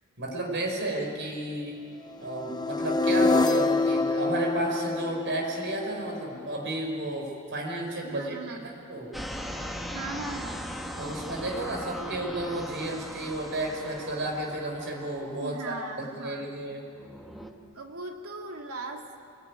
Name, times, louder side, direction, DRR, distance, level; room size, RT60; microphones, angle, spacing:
voice 1, 0.2-1.8 2.2-9.1 11.0-15.8 16.2-16.8, right 1 dB, 55° right, 1 dB, 5.1 m, -32 dB
sound 1, 2.3-6.3, left 3 dB, 20° left, 0.6 m, -26 dB
voice 2, 8.0-8.7 9.9-10.9 15.4-16.5 17.7-19.1, right 3 dB, 70° right, 3 dB, 2.4 m, -39 dB
sound 2, 9.1-16.3 16.9-17.5, equal, ahead, 1.6 m, -39 dB
26.0 x 21.5 x 9.6 m, 2.4 s
head